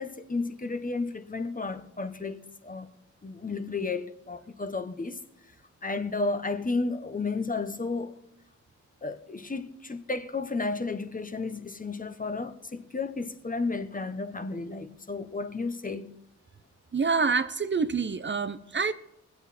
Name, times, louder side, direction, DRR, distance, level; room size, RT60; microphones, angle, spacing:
voice 1, 0.0-2.9 3.2-5.2 5.8-8.1 9.0-16.1, left 3 dB, 25° left, 1.2 m, -32 dB
voice 2, 16.9-18.9, right 5 dB, 35° right, 0.8 m, -27 dB
23.5 x 8.2 x 4.3 m
cardioid pair, 90°, 31 cm